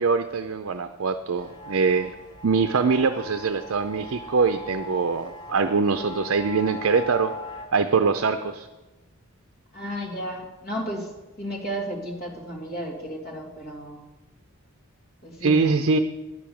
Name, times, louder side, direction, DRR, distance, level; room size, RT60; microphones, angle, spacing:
voice 1, 0.0-2.1 2.4-7.3 7.7-8.7 15.4-16.0, right 4 dB, 65° right, 8 dB, 0.5 m, -23 dB
sound 1, 1.4-7.7, left 2 dB, 20° left, 1.5 m, -39 dB
voice 2, 9.7-11.1 11.4-14.0 15.2-15.7, equal, 45° left, -1 dB, 2.5 m, -33 dB
9.7 x 6.1 x 8.6 m, 1.1 s
head